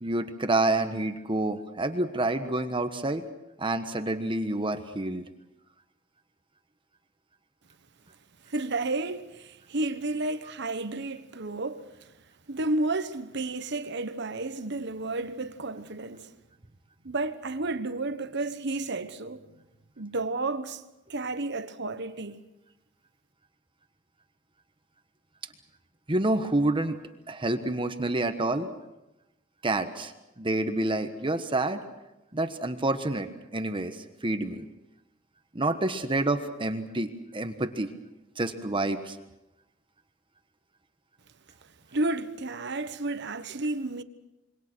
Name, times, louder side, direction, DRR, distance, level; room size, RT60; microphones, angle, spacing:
voice 1, 0.0-3.2 3.6-5.2 26.1-27.0 27.3-28.7 29.6-31.8 32.3-34.6 35.5-37.9 38.4-39.2, right 2 dB, 25° right, 1.3 m, -28 dB
voice 2, 8.5-11.8 12.5-16.3 17.0-19.5 20.0-20.8 21.1-22.4 41.9-44.0, right 2 dB, 60° right, 1.3 m, -31 dB
27.0 x 23.5 x 6.3 m
head